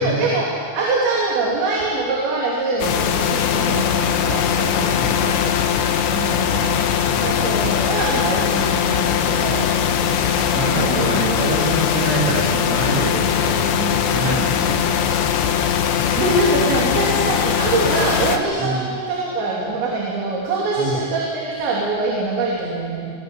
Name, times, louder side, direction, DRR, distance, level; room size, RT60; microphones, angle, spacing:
voice 1, 0.0-5.6 6.1-6.8 7.2-11.3 16.2-23.1, right 2 dB, 90° right, -4 dB, 5.5 m, -24 dB
sound 1, 2.8-18.4, left 8 dB, 85° left, 3.6 m, -20 dB
voice 2, 4.8-5.3 6.5-6.7 7.1-7.4 10.5-15.1 18.6-18.8 20.8-20.9, right 1 dB, 40° right, -2 dB, 4.8 m, -26 dB
26.0 x 17.5 x 8.3 m, 2.2 s
omnidirectional pair, 5.0 m